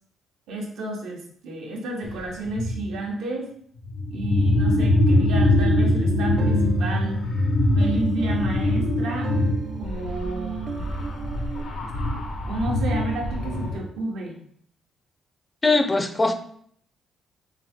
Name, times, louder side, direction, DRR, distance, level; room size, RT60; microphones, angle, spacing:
voice 1, 0.5-3.5 4.1-7.2 7.7-9.3 9.8-10.9 12.4-14.4, right 2 dB, 80° right, 0 dB, 1.0 m, -31 dB
sound 1, 2.0-2.2 2.5-2.9 3.8-13.8, left 1 dB, 80° left, 0.8 m, -23 dB
sound 2, 5.8-11.6, right 6 dB, 50° right, 0.4 m, -38 dB
voice 2, 15.6-16.3, left 3 dB, 20° left, 6 dB, 0.4 m, -20 dB
3.8 x 2.7 x 3.6 m, 0.62 s
cardioid pair, 90°, 0 cm